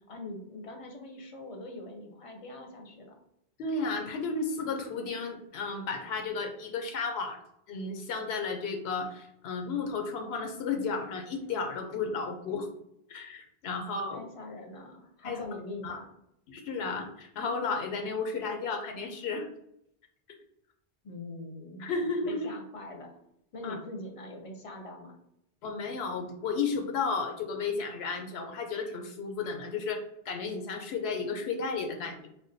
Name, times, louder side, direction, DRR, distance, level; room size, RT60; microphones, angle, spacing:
voice 1, 0.0-3.2 14.1-16.1 21.0-21.9 22.2-23.2 23.5-25.1, left 2 dB, 40° left, 2 dB, 0.5 m, -43 dB
voice 2, 3.6-7.4 7.7-12.7 13.1-14.2 15.2-15.5 15.8-16.0 16.5-19.5 21.8-22.5 23.6-23.7 25.6-30.0 30.3-32.3, left 4 dB, 90° left, 4 dB, 0.8 m, -33 dB
3.6 x 2.3 x 2.6 m, 0.77 s
omnidirectional pair, 1.0 m